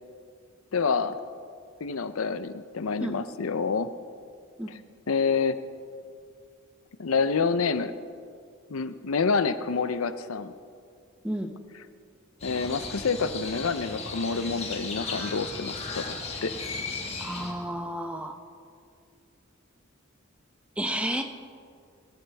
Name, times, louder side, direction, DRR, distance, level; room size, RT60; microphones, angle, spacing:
voice 1, 0.7-1.2 1.8-3.9 4.7-4.8 5.1-5.6 7.0-7.9 8.7-10.5 12.4-16.2 16.4-16.5, left 5 dB, 90° left, 12 dB, 0.6 m, -27 dB
Crow, 12.4-17.5, left 3 dB, 30° left, 1.6 m, -36 dB
voice 2, 17.2-18.4 20.8-21.2, equal, 5° right, 5 dB, 0.8 m, -31 dB
19.5 x 14.0 x 3.5 m, 2.2 s
head